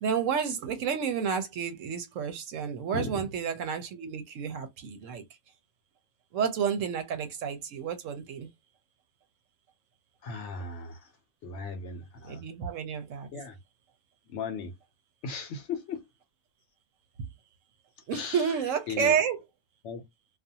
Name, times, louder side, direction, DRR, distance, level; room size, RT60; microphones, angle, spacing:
voice 1, 0.0-5.2 6.3-8.5 12.2-13.3 18.1-19.4, right 7 dB, 70° right, 0.9 m, -30 dB
voice 2, 2.9-3.3 10.2-11.1 11.4-12.4 13.3-13.6 14.3-14.7 15.2-16.0 18.1-18.5 18.9-19.2 19.8-20.0, left 4 dB, 60° left, 0.9 m, -36 dB
2.4 x 2.3 x 2.7 m
omnidirectional pair, 1.5 m